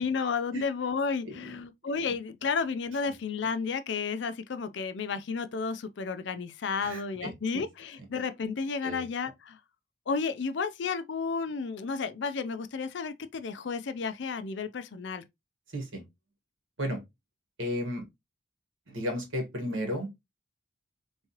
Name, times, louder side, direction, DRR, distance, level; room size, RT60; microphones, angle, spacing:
voice 1, 0.0-9.6 10.1-15.2, left 5 dB, 60° left, 0.4 m, -32 dB
voice 2, 6.8-7.6 8.8-9.1 15.7-16.0 16.8-17.0 17.6-18.0 18.9-20.1, equal, 75° right, 1.5 m, -33 dB
3.6 x 3.1 x 2.8 m
head